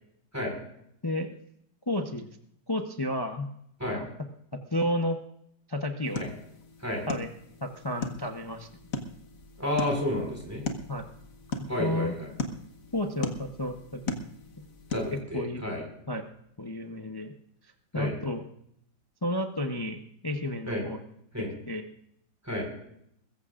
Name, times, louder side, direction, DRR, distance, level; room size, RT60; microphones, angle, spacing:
voice 1, 1.0-1.3 1.9-2.3 2.7-3.5 3.9-4.1 4.7-5.2 5.7-6.3 7.1-7.3 7.6-8.7 10.9-11.1 11.8-12.1 12.9-14.0 14.6-14.7 15.1-15.6 16.1-16.2 16.6-17.3 17.9-18.4 19.2-21.0 21.7-21.8, left 1 dB, 30° left, 5 dB, 0.4 m, -31 dB
sound 1, 6.0-15.2, left 3 dB, 50° left, 1.5 m, -38 dB
voice 2, 9.6-10.6 11.7-12.3 14.9-15.8 17.9-18.1 20.7-20.8 21.3-21.5 22.4-22.7, left 1 dB, 10° right, 0 dB, 4.5 m, -31 dB
22.0 x 14.5 x 2.5 m, 0.74 s
omnidirectional pair, 1.9 m